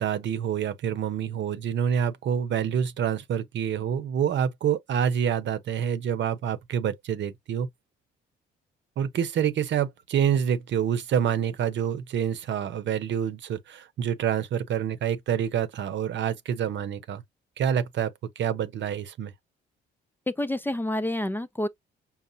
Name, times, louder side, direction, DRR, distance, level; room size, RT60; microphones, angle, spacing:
voice 1, 0.0-7.7 9.0-17.2 17.6-19.3, right 8 dB, 65° right, 0.9 m, -27 dB
voice 2, 20.3-21.7, left 1 dB, 10° left, 0.5 m, -28 dB
5.6 x 2.1 x 3.9 m
cardioid pair, 90°, 20 cm